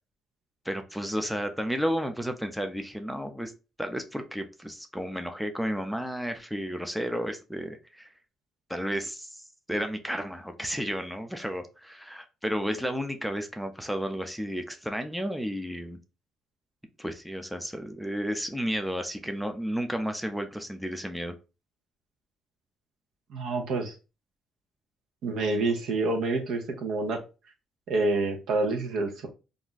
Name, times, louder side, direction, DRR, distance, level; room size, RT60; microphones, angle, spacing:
voice 1, 0.7-3.5 3.8-8.1 8.7-9.4 9.7-16.0 17.0-21.3, equal, ahead, 6 dB, 0.5 m, -32 dB
voice 2, 23.3-23.9 25.2-27.2 27.9-29.3, right 3 dB, 75° right, 5 dB, 0.7 m, -27 dB
2.5 x 2.2 x 3.8 m, 0.30 s
cardioid pair, 95°, 0 cm